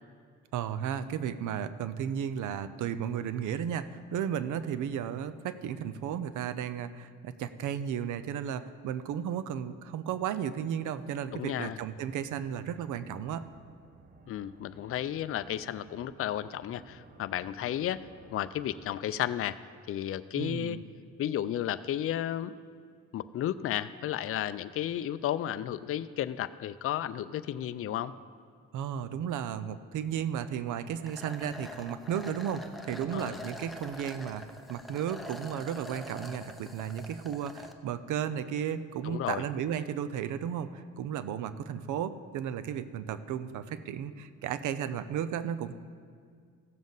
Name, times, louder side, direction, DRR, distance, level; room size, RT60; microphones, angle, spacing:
voice 1, 0.5-13.4 20.4-20.8 28.7-45.7, right 9 dB, 75° right, 13 dB, 0.6 m, -34 dB
sound 1, 11.1-19.7, right 4 dB, 30° right, 0.9 m, -57 dB
voice 2, 11.3-11.8 14.3-18.0 18.3-19.6 19.9-20.8 21.2-22.5 23.1-28.1 33.1-33.4 39.0-39.4, left 11 dB, 50° left, 13 dB, 0.4 m, -33 dB
sound 2, 31.1-37.7, left 1 dB, ahead, 0.8 m, -45 dB
15.5 x 7.2 x 3.9 m, 2.1 s
cardioid pair, 90°, 30 cm